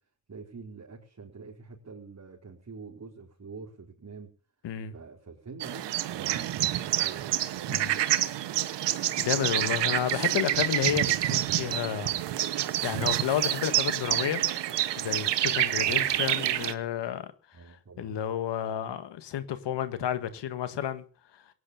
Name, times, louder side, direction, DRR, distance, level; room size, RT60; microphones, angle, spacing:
voice 1, 0.3-4.3 4.9-7.5 15.8-16.2 17.5-18.2, right 4 dB, 40° right, 4.4 m, -46 dB
sound 1, 5.6-16.7, right 13 dB, 85° right, 1.2 m, -28 dB
voice 2, 9.2-12.1 12.8-14.4 15.0-17.3 18.0-21.0, left 10 dB, 80° left, 1.7 m, -31 dB
17.5 x 9.9 x 7.0 m
cardioid pair, 60°, 42 cm